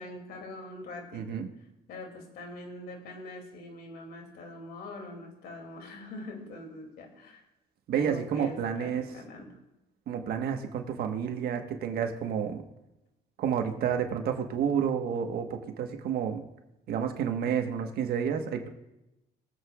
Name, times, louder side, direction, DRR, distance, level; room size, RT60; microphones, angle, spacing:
voice 1, 0.0-1.4 1.9-7.4 7.9-9.6, left 2 dB, 70° left, 2 dB, 2.8 m, -43 dB
voice 2, 1.1-1.5 7.9-9.0 10.1-12.6 13.4-16.4 16.9-18.7, right 8 dB, 65° right, 5 dB, 1.4 m, -30 dB
22.5 x 8.1 x 2.4 m, 0.93 s
cardioid pair, 110°, 17 cm